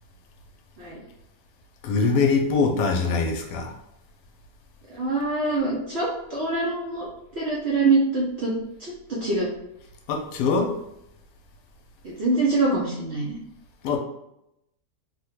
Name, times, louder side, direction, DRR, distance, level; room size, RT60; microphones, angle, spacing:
voice 1, 1.8-3.7 10.1-10.7 13.8-14.0, left 4 dB, 85° left, 3 dB, 1.2 m, -22 dB
voice 2, 4.9-7.1 7.3-8.5 8.8-9.5 12.0-13.4, right 3 dB, 60° right, -6 dB, 0.7 m, -24 dB
3.5 x 2.1 x 3.0 m, 0.81 s
omnidirectional pair, 1.8 m